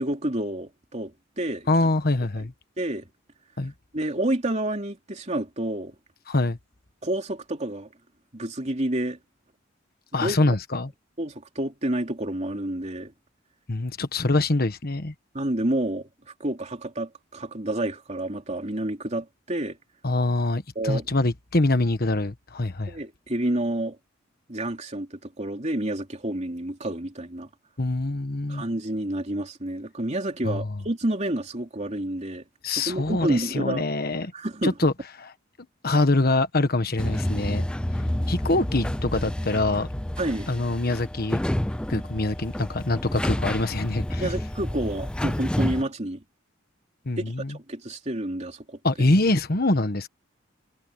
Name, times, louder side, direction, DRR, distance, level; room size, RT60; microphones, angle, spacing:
voice 1, 0.0-1.7 2.8-3.1 3.9-5.9 7.0-7.9 8.3-9.2 10.2-10.6 11.2-13.1 15.3-19.8 20.7-21.1 22.9-24.0 24.5-27.5 28.5-33.8 34.3-34.7 40.2-40.5 44.2-46.2 47.2-48.8, right 1 dB, 35° right, 3.3 m, -29 dB
voice 2, 1.7-2.5 3.6-3.7 6.3-6.6 10.1-10.9 13.7-15.1 20.0-23.0 27.8-28.6 30.4-30.8 32.6-34.3 34.6-34.9 35.2-35.3 35.8-37.7 38.3-39.9 40.5-41.4 41.9-44.3 47.0-47.6 48.8-50.1, left 2 dB, 50° left, 1.4 m, -24 dB
sound 1, 37.0-45.8, left 1 dB, 5° left, 0.3 m, -29 dB
head